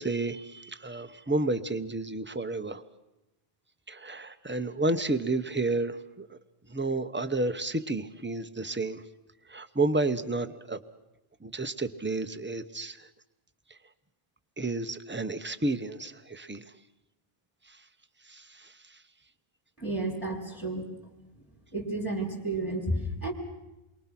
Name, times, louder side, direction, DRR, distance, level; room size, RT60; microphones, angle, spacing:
voice 1, 0.0-2.8 3.9-6.4 6.7-9.0 9.5-10.8 11.4-13.1 14.6-16.6 18.3-18.7, right 2 dB, 10° right, 9 dB, 0.8 m, -31 dB
voice 2, 19.8-20.8 21.7-23.3, right 2 dB, 15° left, -2 dB, 3.3 m, -31 dB
28.5 x 23.0 x 6.0 m, 0.97 s
omnidirectional pair, 1.0 m